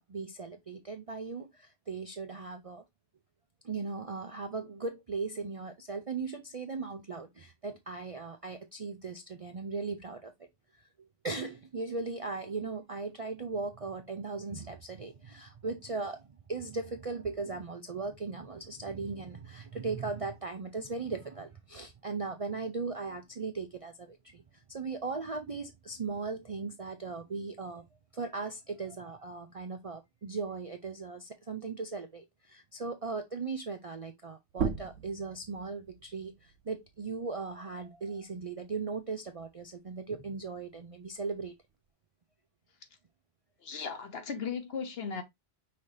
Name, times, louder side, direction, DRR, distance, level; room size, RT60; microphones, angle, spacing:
voice 1, 0.0-2.8 3.6-10.3 11.0-27.8 28.1-41.6, right 4 dB, 45° right, 0.4 m, -38 dB
sound 1, 34.5-39.7 40.1-41.9, right 6 dB, 65° right, 0.9 m, -40 dB
voice 2, 43.6-45.2, left 6 dB, 60° left, 1.1 m, -36 dB
5.7 x 2.8 x 3.2 m
omnidirectional pair, 1.2 m